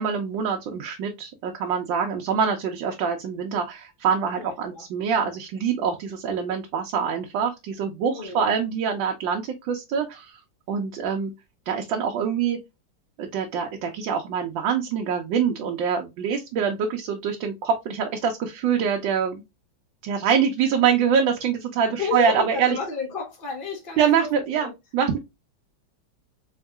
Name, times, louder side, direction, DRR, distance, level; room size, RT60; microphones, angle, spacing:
voice 1, 0.0-10.4 10.7-11.3 11.7-12.6 13.2-19.4 20.0-22.8 24.0-25.2, right 7 dB, 75° right, 1.4 m, -25 dB
voice 2, 4.4-4.9 8.1-8.5 22.0-24.7, left 4 dB, 55° left, 0.6 m, -32 dB
3.9 x 3.6 x 2.3 m
omnidirectional pair, 2.1 m